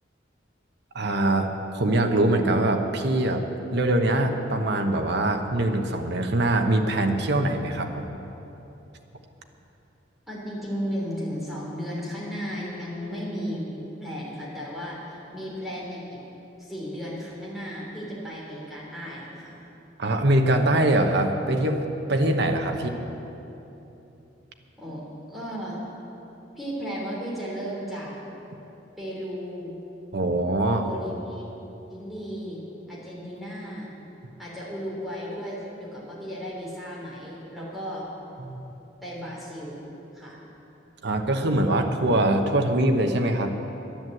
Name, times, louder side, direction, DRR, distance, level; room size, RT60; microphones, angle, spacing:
voice 1, 0.9-1.5 1.7-3.4 3.7-8.1 20.0-21.8 22.1-22.9 30.1-30.9 38.4-38.7 41.0-43.5, right 1 dB, 65° right, 5 dB, 1.0 m, -23 dB
voice 2, 10.3-13.7 14.0-16.2 16.6-19.6 22.7-22.9 24.8-25.0 25.3-25.8 26.6-28.1 29.0-29.7 30.8-31.4 31.9-32.6 32.9-33.9 34.4-38.1 39.0-39.8 40.1-40.4, equal, ahead, -6 dB, 3.1 m, -34 dB
10.5 x 10.5 x 7.8 m, 3.0 s
head